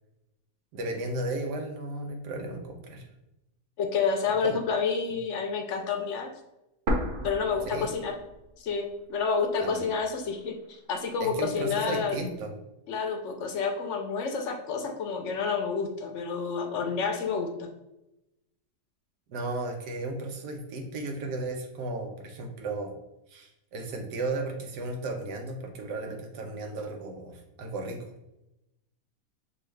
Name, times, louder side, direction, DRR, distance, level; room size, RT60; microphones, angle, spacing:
voice 1, 0.7-3.1 4.4-4.5 7.7-7.9 9.6-9.8 11.2-12.5 19.3-22.9 23.3-28.1, right 2 dB, 90° right, 3 dB, 1.4 m, -34 dB
voice 2, 3.8-6.3 7.2-8.1 8.6-10.5 10.9-12.2 12.9-17.7, left 5 dB, 65° left, 4 dB, 0.7 m, -29 dB
sound 1, 6.9-8.8 9.1-9.2 9.9-10.9, equal, 50° right, 0.6 m, -33 dB
6.5 x 2.4 x 3.2 m, 0.91 s
omnidirectional pair, 1.7 m